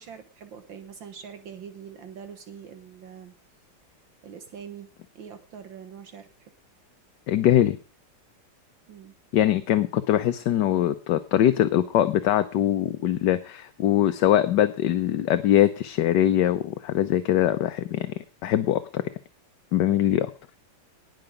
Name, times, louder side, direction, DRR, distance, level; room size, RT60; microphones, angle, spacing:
voice 1, 0.0-3.3 4.2-4.9 5.2-6.5 8.9-9.1, right 7 dB, 70° right, 8 dB, 2.0 m, -43 dB
voice 2, 7.3-7.8 9.3-18.1 18.4-19.0 19.7-20.3, left 12 dB, 65° left, 10 dB, 1.3 m, -22 dB
19.0 x 6.8 x 5.1 m, 0.37 s
omnidirectional pair, 2.2 m